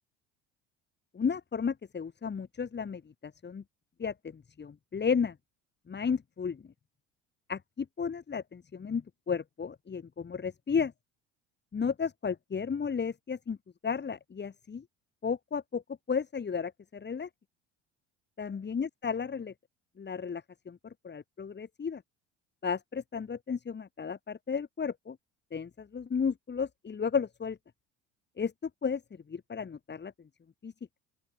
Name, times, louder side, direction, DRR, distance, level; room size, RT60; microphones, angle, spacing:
voice 1, 1.1-3.6 4.0-5.3 5.9-6.6 7.5-10.9 11.7-13.6 13.8-14.8 15.2-15.8 16.1-17.3 18.4-19.5 20.0-22.0 22.6-25.2 25.5-27.6 28.4-29.0 29.3-30.1 30.6-30.7, left 6 dB, 30° left, 7.9 m, -33 dB
open air
hypercardioid pair, 70°, 33 cm